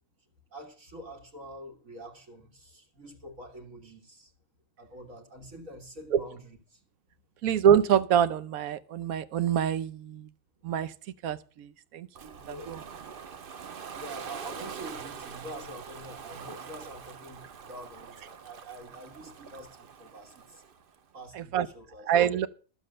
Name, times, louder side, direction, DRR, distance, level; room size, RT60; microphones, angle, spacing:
voice 1, 0.5-4.3 4.8-6.8 12.3-12.7 13.9-20.6 21.1-22.3, right 1 dB, 70° right, 2.1 m, -46 dB
voice 2, 7.4-10.3 10.6-10.9 11.2-12.8 21.4-21.7 22.1-22.5, right 9 dB, 90° right, 1.2 m, -26 dB
Ocean, 12.1-21.0, right 6 dB, 50° right, 0.8 m, -44 dB
12.5 x 7.3 x 6.5 m
omnidirectional pair, 1.4 m